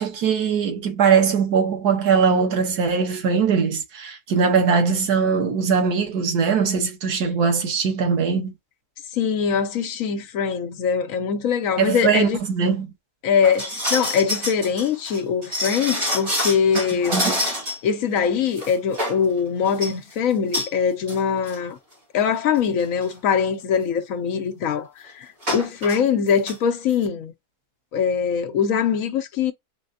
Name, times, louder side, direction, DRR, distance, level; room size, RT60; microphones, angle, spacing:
voice 1, 0.0-8.5 11.8-12.9 16.8-16.9 17.1-17.3, right 6 dB, 90° right, 1.5 m, -21 dB
voice 2, 9.1-12.4 13.2-17.2 17.8-21.8 22.1-27.3 27.9-29.5, left 7 dB, 65° left, 1.0 m, -22 dB
sound 1, 13.4-17.9 18.2-18.3 18.6-19.2 19.7-20.0 20.5-20.7 21.1-21.2 21.5-21.6 22.4-22.5 22.8-23.0 25.4-26.0 26.3-26.6 26.9-27.0, left 1 dB, 60° right, 2.7 m, -27 dB
4.0 x 3.2 x 2.6 m
omnidirectional pair, 1.6 m